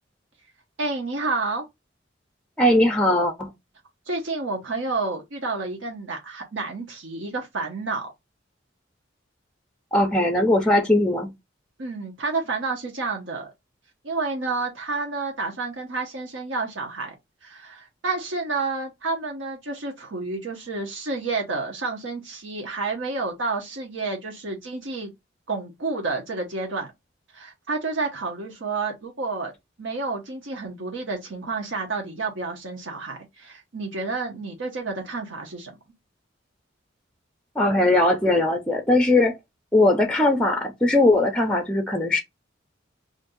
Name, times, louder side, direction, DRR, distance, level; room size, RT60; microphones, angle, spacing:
voice 1, 0.8-1.6 4.1-8.1 11.8-13.5 14.0-17.1 17.4-25.1 25.5-26.9 27.3-29.5 29.8-35.8, right 3 dB, 70° right, 0.8 m, -30 dB
voice 2, 2.6-3.5 9.9-11.3 37.6-39.3 39.7-42.2, left 1 dB, 5° left, 0.5 m, -20 dB
5.1 x 2.5 x 2.6 m
head